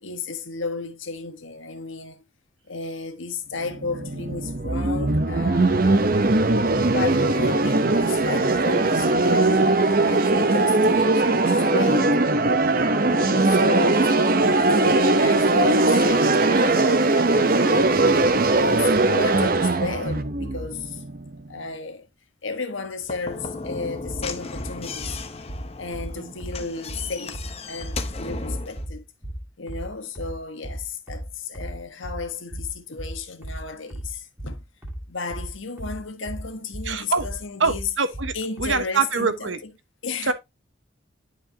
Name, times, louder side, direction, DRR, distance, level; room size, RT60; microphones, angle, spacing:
voice 1, 0.0-2.2 2.7-6.0 6.7-12.2 13.0-18.1 18.5-21.0 21.5-22.1 22.4-25.2 25.8-27.4 27.7-29.0 29.6-34.6 35.1-37.9 38.3-39.5 40.0-40.3, left 4 dB, 75° left, 1.4 m, -33 dB
sound 1, 3.6-21.5, right 2 dB, 45° right, 0.8 m, -20 dB
Slam / Knock, 23.0-28.9, left 3 dB, 30° left, 0.8 m, -35 dB
sound 2, 24.0-38.8, equal, 10° right, 2.1 m, -35 dB
voice 2, 36.8-37.3 37.6-39.6 40.2-40.3, right 4 dB, 70° right, 1.2 m, -25 dB
11.0 x 5.1 x 2.8 m
head